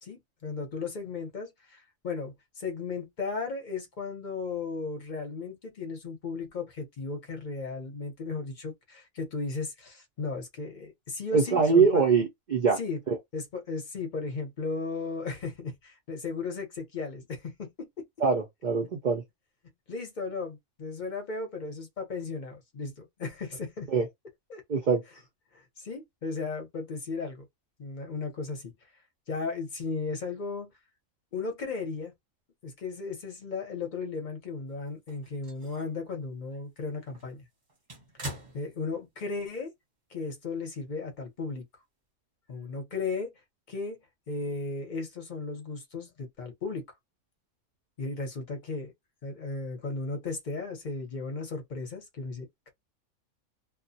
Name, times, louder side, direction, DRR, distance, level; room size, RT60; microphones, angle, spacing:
voice 1, 0.0-12.0 12.8-13.0 13.3-18.0 19.9-23.9 24.5-24.6 25.5-27.5 27.8-28.7 29.3-30.7 31.3-32.1 32.6-37.4 38.5-39.7 40.1-41.6 42.5-43.3 43.7-44.0 44.3-46.8 48.0-48.9 49.2-52.7, left 4 dB, 45° left, 0.7 m, -35 dB
voice 2, 11.3-12.8 13.1-13.2 18.2-19.2 23.9-24.1 24.7-25.0, right 5 dB, 75° right, 0.4 m, -23 dB
sound 1, 34.9-36.0 36.5-36.6 37.1-39.2 39.5-39.6 40.8-40.9, right 1 dB, 30° right, 0.7 m, -44 dB
2.3 x 2.0 x 2.6 m
omnidirectional pair, 1.5 m